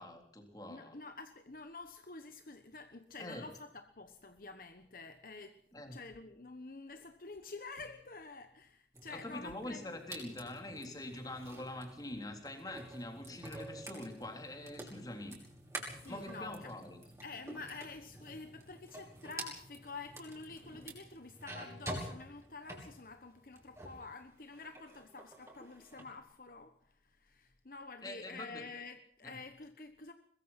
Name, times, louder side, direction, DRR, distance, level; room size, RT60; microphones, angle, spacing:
voice 1, 0.0-1.0 3.2-3.5 5.7-6.0 9.1-15.4 16.1-17.0 28.0-28.7 29.2-29.4, left 1 dB, 20° left, 3.6 m, -44 dB
voice 2, 0.7-10.0 15.8-16.8 17.2-30.1, left 3 dB, 50° left, 1.2 m, -49 dB
sound 1, 8.9-24.1 24.4-26.1, right 1 dB, 15° right, 5.6 m, -49 dB
22.5 x 21.5 x 5.9 m
head